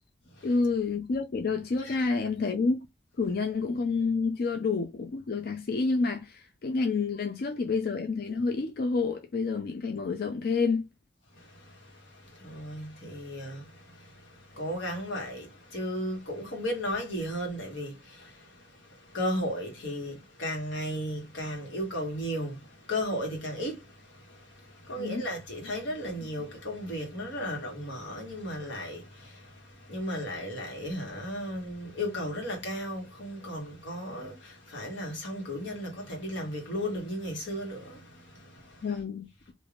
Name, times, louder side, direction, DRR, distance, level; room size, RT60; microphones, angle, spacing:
voice 1, 0.4-2.8 3.2-10.9 25.0-25.2 38.8-39.5, left 4 dB, 55° left, 0.4 m, -29 dB
voice 2, 11.3-38.9, equal, 90° left, 1.4 m, -35 dB
3.3 x 2.5 x 2.4 m
head